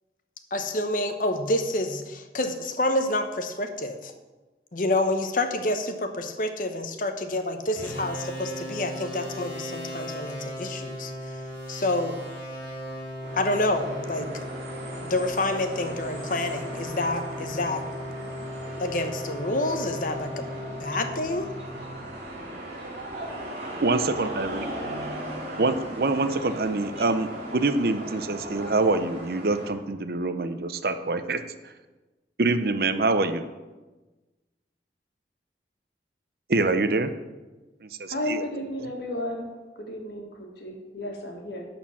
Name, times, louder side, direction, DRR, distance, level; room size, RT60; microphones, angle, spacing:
voice 1, 0.5-4.1 4.7-11.4 11.7-12.2 13.4-14.4 15.0-17.8 18.8-20.5 20.8-21.5, left 1 dB, 45° left, 7 dB, 0.8 m, -28 dB
sound 1, 7.8-22.3, equal, 10° left, 3.5 m, -37 dB
sound 2, 13.2-29.7, right 1 dB, 40° right, 3.8 m, -38 dB
voice 2, 23.8-24.7 25.6-31.4 32.4-33.5 36.5-37.1 37.8-38.4 38.8-38.9, right 3 dB, 55° right, 10 dB, 0.6 m, -25 dB
voice 3, 38.1-39.5 39.8-41.6, left 1 dB, 65° left, 1 dB, 1.8 m, -33 dB
11.5 x 4.4 x 7.3 m, 1.2 s
head